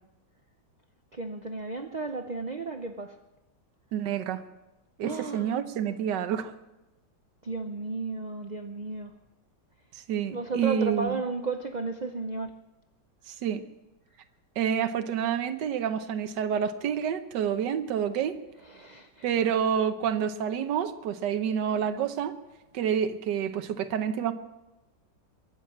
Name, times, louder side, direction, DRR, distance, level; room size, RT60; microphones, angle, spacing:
voice 1, 1.1-3.2 5.0-5.6 7.4-9.1 10.3-12.5 18.6-19.3, right 3 dB, 90° right, 6 dB, 0.3 m, -34 dB
voice 2, 3.9-4.4 5.0-6.5 9.9-11.2 13.3-13.6 14.6-18.4 19.2-22.3 22.7-24.3, right 8 dB, 70° right, 9 dB, 1.5 m, -28 dB
23.0 x 7.6 x 7.3 m, 1.0 s
omnidirectional pair, 2.0 m